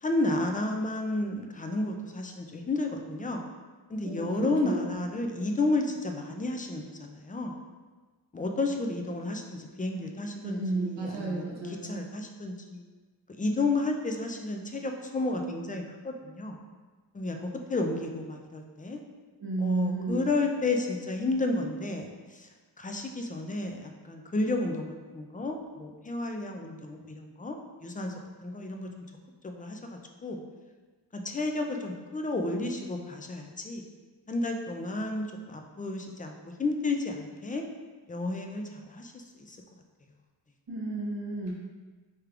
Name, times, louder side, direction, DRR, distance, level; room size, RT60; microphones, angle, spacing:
voice 1, 0.0-3.4 3.9-7.6 8.3-12.8 13.4-16.6 17.1-19.0 19.6-22.5 22.8-27.6 27.8-28.1 28.4-28.9 29.4-29.8 30.2-30.4 31.1-33.8 34.3-37.6 38.1-39.6, left 2 dB, 20° left, 3 dB, 0.3 m, -32 dB
voice 2, 4.0-4.9 10.4-12.0 19.4-20.3 40.7-41.5, right 3 dB, 60° right, -3 dB, 1.1 m, -32 dB
4.5 x 3.2 x 2.4 m, 1.3 s
wide cardioid pair, 95°, 47 cm